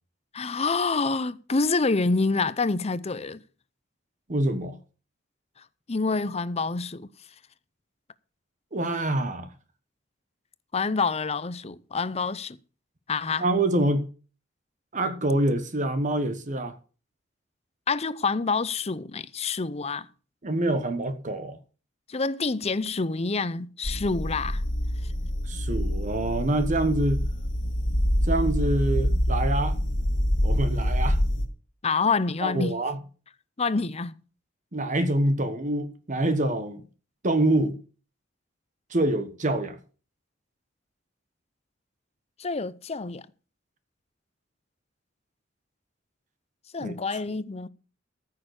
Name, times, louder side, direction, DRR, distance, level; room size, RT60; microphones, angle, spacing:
voice 1, 0.3-3.4 5.9-7.1 10.7-12.6 13.1-13.4 17.9-20.1 22.1-24.6 31.8-32.7 33.6-34.2 42.4-43.2 46.7-47.7, left 4 dB, 35° left, 0.7 m, -27 dB
voice 2, 4.3-4.8 8.7-9.5 13.4-14.1 14.9-16.8 20.4-21.6 25.5-27.2 28.2-29.8 30.4-31.2 32.4-33.0 34.7-36.8 37.2-37.8 38.9-39.8 46.8-47.0, right 1 dB, 40° right, 1.3 m, -26 dB
sound 1, 23.8-31.5, equal, 75° left, 2.1 m, -26 dB
14.0 x 6.8 x 6.5 m
head